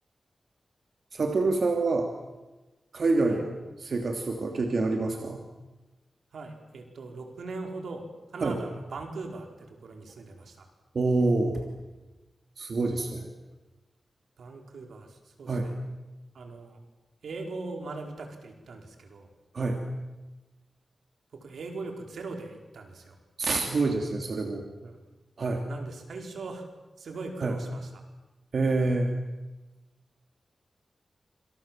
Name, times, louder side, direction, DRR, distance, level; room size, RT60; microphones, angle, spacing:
voice 1, 1.1-2.1 2.9-3.5 3.8-5.4 8.4-8.6 10.9-11.6 12.6-13.3 15.5-15.7 19.5-19.8 23.4-24.6 25.4-25.7 27.4-27.6 28.5-29.1, right 3 dB, 65° right, 3 dB, 3.1 m, -26 dB
voice 2, 6.3-8.1 8.3-10.7 14.4-15.7 16.3-16.8 17.2-19.3 21.3-23.2 24.8-25.0 25.7-26.7 27.0-28.0, right 3 dB, 90° right, 3 dB, 4.8 m, -40 dB
27.0 x 27.0 x 7.7 m, 1.1 s
cardioid pair, 70°, 0 cm